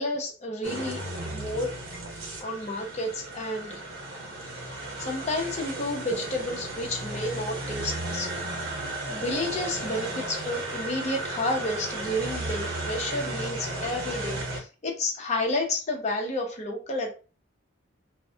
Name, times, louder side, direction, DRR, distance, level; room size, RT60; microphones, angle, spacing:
voice 1, 0.0-1.7 2.4-3.8 4.5-8.4 8.8-17.1, left 1 dB, 35° left, 1 dB, 0.6 m, -31 dB
sound 1, 0.6-14.6, right 2 dB, 90° right, 0.8 m, -34 dB
2.2 x 2.0 x 2.7 m, 0.35 s
head